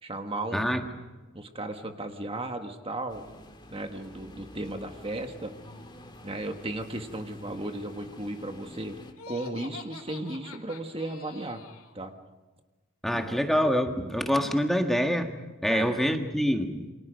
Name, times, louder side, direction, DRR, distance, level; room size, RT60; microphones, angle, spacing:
voice 1, 0.0-0.7 1.3-3.2 3.7-5.5 6.2-9.0 9.3-11.6 11.9-12.1 13.1-13.4 15.7-16.0, right 2 dB, 25° right, 5 dB, 1.6 m, -35 dB
sound 1, 3.1-9.1, left 1 dB, 20° left, 2.2 m, -48 dB
Laughter, 9.1-12.0, left 4 dB, 70° left, 2.6 m, -45 dB
voice 2, 13.0-15.3 15.6-16.9, equal, ahead, 4 dB, 1.6 m, -26 dB
29.0 x 25.0 x 5.2 m, 1.2 s
head